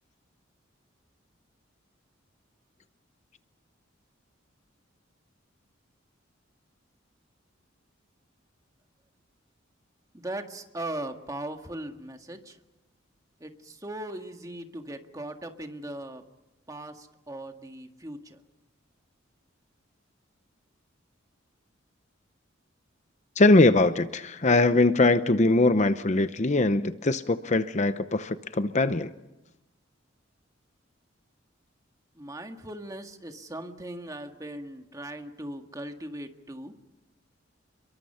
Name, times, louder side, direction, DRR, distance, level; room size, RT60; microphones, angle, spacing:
voice 1, 10.1-12.6 13.4-16.2 16.7-18.4 32.2-36.7, right 1 dB, 20° right, 5 dB, 1.8 m, -39 dB
voice 2, 23.4-29.1, left 2 dB, 35° left, 11 dB, 0.7 m, -22 dB
29.5 x 22.5 x 5.8 m, 1.0 s
head